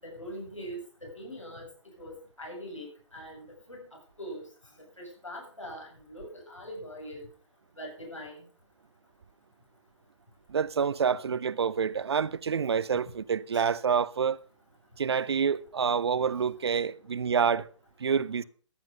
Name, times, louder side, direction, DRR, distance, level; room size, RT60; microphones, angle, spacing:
voice 1, 0.0-1.7 1.9-4.4 5.0-7.3 7.8-8.4 13.0-13.1 13.5-13.7, equal, 80° left, 7.7 m, -42 dB
voice 2, 10.5-14.4 15.0-17.7 18.0-18.4, right 6 dB, 55° right, 0.7 m, -27 dB
14.0 x 9.4 x 5.3 m
figure-of-eight pair, 130°, 16 cm